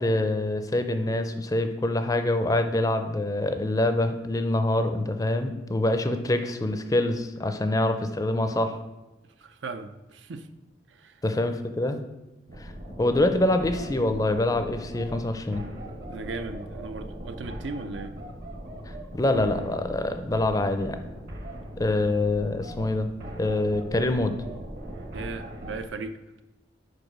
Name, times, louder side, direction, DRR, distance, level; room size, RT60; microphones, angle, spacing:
voice 1, 0.0-8.8 11.2-12.0 12.6-12.7 13.0-15.6 18.9-21.0 21.8-23.1 23.4-24.3, left 1 dB, 20° left, 8 dB, 0.4 m, -25 dB
voice 2, 9.4-10.5 10.9-11.2 16.1-18.1 25.1-26.2, right 3 dB, 75° right, 9 dB, 0.5 m, -37 dB
sound 1, 12.5-25.9, right 1 dB, 55° right, 1.1 m, -40 dB
5.0 x 4.7 x 6.0 m, 1.0 s
head